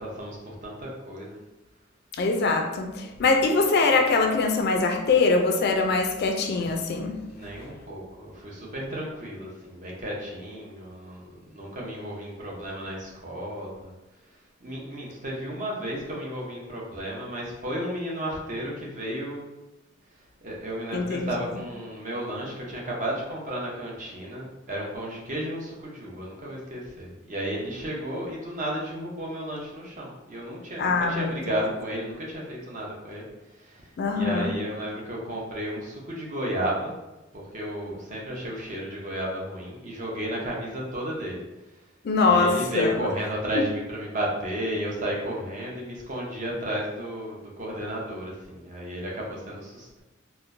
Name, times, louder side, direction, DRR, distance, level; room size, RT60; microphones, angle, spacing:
voice 1, 0.0-1.4 3.1-3.2 7.3-13.9 14.6-19.4 20.4-33.2 33.5-36.9 37.3-41.4 42.2-50.0, equal, 40° right, -3 dB, 0.7 m, -33 dB
voice 2, 2.1-7.2 20.9-21.3 30.8-31.6 34.0-34.5 42.0-43.0, left 3 dB, 50° left, 4 dB, 0.4 m, -23 dB
4.3 x 2.1 x 2.5 m, 1.0 s
head